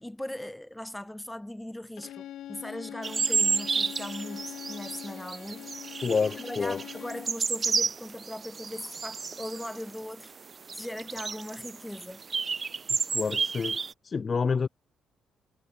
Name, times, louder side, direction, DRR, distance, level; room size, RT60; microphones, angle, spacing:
voice 1, 0.0-6.0 6.4-10.3 10.7-12.2, left 1 dB, 5° left, 4.2 m, -39 dB
Bowed string instrument, 2.0-7.4, left 12 dB, 80° left, 3.9 m, -43 dB
sound 1, 3.0-10.0 10.2-10.3 10.5-13.9, right 5 dB, 35° right, 2.4 m, -31 dB
voice 2, 6.0-6.8 13.1-13.8 14.0-14.7, left 5 dB, 40° left, 0.4 m, -28 dB
cardioid pair, 90°, 0 cm